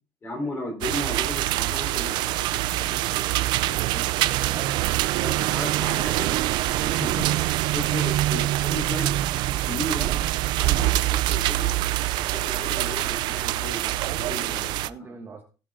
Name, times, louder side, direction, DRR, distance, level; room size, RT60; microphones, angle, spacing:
voice 1, 0.2-2.3 2.7-4.3 5.2-6.4 6.8-9.1 9.7-10.1 10.6-11.7 12.4-15.1, left 1 dB, 25° left, 3.9 m, -35 dB
sound 1, 0.8-14.9, right 16 dB, 60° right, 0.4 m, -25 dB
voice 2, 4.4-5.8 6.9-7.5 7.8-7.9 14.0-15.4, right 5 dB, 25° right, 1.3 m, -42 dB
17.0 x 6.8 x 3.7 m
cardioid pair, 170°, 9 cm